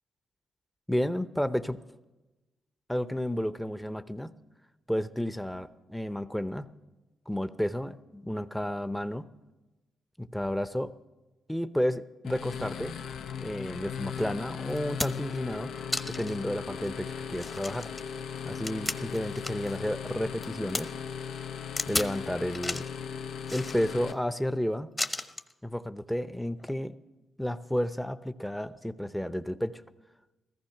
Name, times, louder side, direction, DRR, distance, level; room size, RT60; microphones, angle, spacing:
voice 1, 0.9-1.8 2.9-4.3 4.9-6.7 7.3-9.3 10.2-10.9 11.5-12.9 13.4-15.7 16.1-17.9 18.4-20.9 21.9-22.9 23.5-24.9 25.6-26.9 27.4-29.8, equal, 5° left, 12 dB, 0.7 m, -31 dB
sound 1, 12.2-24.1, left 7 dB, 80° left, 0.7 m, -38 dB
sound 2, 14.2-14.3 14.7-15.4 15.9-16.4 16.8-16.9 17.3-19.8 20.1-20.8 21.8-22.2 22.5-22.9 23.4-24.1 25.0-25.5 26.6-26.7, left 2 dB, 20° left, 1.0 m, -34 dB
15.0 x 14.5 x 5.8 m, 1.1 s
supercardioid pair, 60°, 0 cm